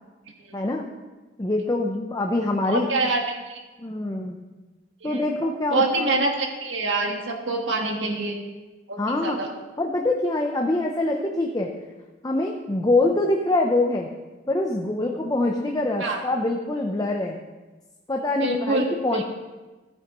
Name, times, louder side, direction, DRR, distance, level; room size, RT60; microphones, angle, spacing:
voice 1, 0.5-0.9 1.4-3.1 3.8-4.4 5.0-6.1 9.0-9.4 9.8-11.7 12.2-14.1 14.5-17.4 18.1-19.2, left 2 dB, 20° left, 1 dB, 0.6 m, -24 dB
voice 2, 2.7-3.6 5.0-5.2 5.7-8.4 8.9-9.5 16.0-16.2 18.4-18.8 19.1-19.2, right 3 dB, 85° right, 2 dB, 1.5 m, -26 dB
14.5 x 8.8 x 3.0 m, 1.2 s
head